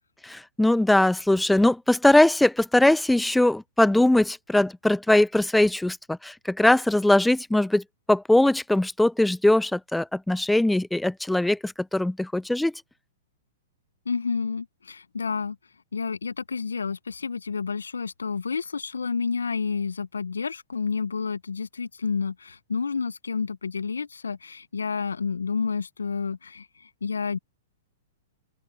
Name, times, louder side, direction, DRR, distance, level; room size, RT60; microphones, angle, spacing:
voice 1, 0.2-12.7, left 1 dB, 5° left, 0.3 m, -21 dB
voice 2, 14.1-15.6 15.9-27.4, left 5 dB, 85° left, 0.4 m, -30 dB
open air
hypercardioid pair, 110°, 0 cm